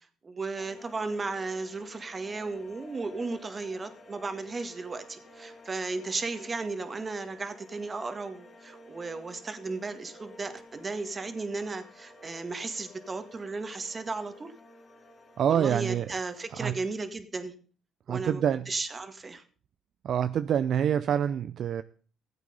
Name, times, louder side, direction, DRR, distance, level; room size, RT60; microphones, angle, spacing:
voice 1, 0.2-14.5 15.5-17.5 18.1-18.4 18.7-19.4, right 3 dB, 30° right, 8 dB, 1.8 m, -35 dB
sound 1, 0.6-16.7, left 1 dB, 45° left, 2.4 m, -53 dB
voice 2, 15.4-16.1 16.5-16.8 18.1-18.7 20.0-21.8, right 9 dB, 60° right, 12 dB, 0.5 m, -26 dB
15.0 x 8.2 x 5.4 m, 0.41 s
supercardioid pair, 80°, 0 cm